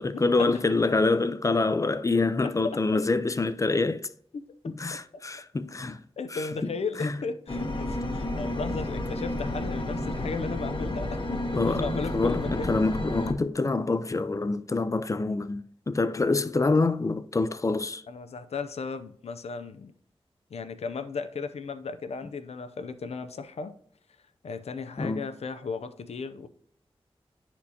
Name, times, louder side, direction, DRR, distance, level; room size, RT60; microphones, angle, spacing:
voice 1, 0.0-4.1 4.8-6.0 6.3-6.7 7.0-7.1 11.5-18.0 25.0-25.2, left 3 dB, 30° left, 0.4 m, -26 dB
voice 2, 2.4-2.8 4.3-4.7 6.2-12.7 18.1-19.9 20.5-23.7 24.4-26.5, left 4 dB, 85° left, 0.5 m, -35 dB
sound 1, 7.5-13.3, left 1 dB, 55° left, 0.9 m, -31 dB
10.0 x 4.3 x 2.8 m
wide cardioid pair, 55°, 10 cm